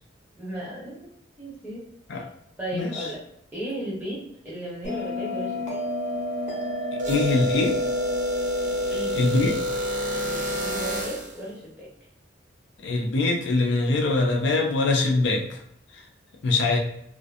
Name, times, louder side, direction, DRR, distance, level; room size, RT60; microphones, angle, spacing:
voice 1, 0.3-1.1 1.4-2.3 2.6-3.2 3.5-5.8 8.9-9.6 10.1-11.9, right 1 dB, 10° right, -6 dB, 0.9 m, -35 dB
Bell, 4.8-9.9, left 1 dB, 40° left, 0.8 m, -32 dB
sound 1, 7.0-11.4, equal, 45° right, 0.5 m, -28 dB
voice 2, 7.1-7.8 9.1-9.5 12.8-15.6 16.4-16.8, left 3 dB, 65° left, 1 dB, 0.4 m, -23 dB
2.6 x 2.4 x 2.4 m, 0.72 s
head